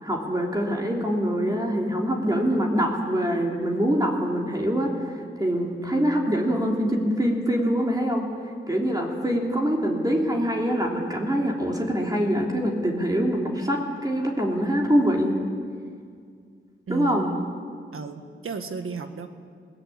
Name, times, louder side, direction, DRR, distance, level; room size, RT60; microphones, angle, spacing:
voice 1, 0.0-8.2 8.7-15.4 16.9-17.3, equal, 20° right, -1 dB, 3.2 m, -24 dB
voice 2, 16.9-17.5 17.9-19.3, right 5 dB, 85° right, 7 dB, 1.7 m, -33 dB
21.5 x 18.5 x 8.8 m, 2.1 s
wide cardioid pair, 95°, 21 cm